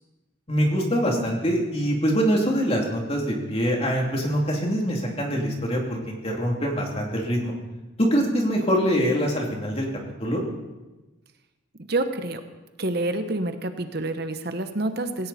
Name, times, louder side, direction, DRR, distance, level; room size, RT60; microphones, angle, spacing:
voice 1, 0.5-7.5 8.0-9.9 10.2-10.4, equal, 30° left, 0 dB, 2.8 m, -24 dB
voice 2, 11.9-12.4 12.8-15.3, right 2 dB, 50° right, 8 dB, 1.0 m, -27 dB
17.5 x 17.5 x 4.2 m, 1.1 s
head